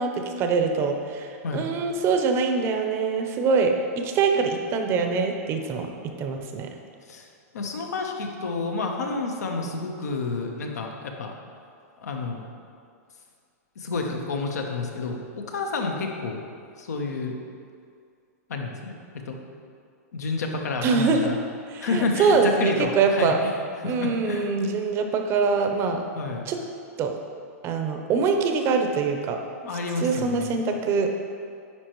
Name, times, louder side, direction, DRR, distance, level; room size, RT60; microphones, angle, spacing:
voice 1, 0.0-5.9 6.2-6.7 20.8-21.2 21.7-23.4 23.8-26.0 26.5-26.6 27.0-27.2 27.6-29.4 30.0-31.1, right 5 dB, 30° right, 4 dB, 0.6 m, -24 dB
voice 2, 7.1-11.3 12.0-12.5 13.8-16.4 16.8-17.3 18.5-19.4 20.1-21.4 21.8-24.5 26.1-26.5 29.7-30.6, left 3 dB, 90° left, 2 dB, 0.9 m, -30 dB
9.8 x 4.4 x 3.0 m, 2.3 s
hypercardioid pair, 140°, 9 cm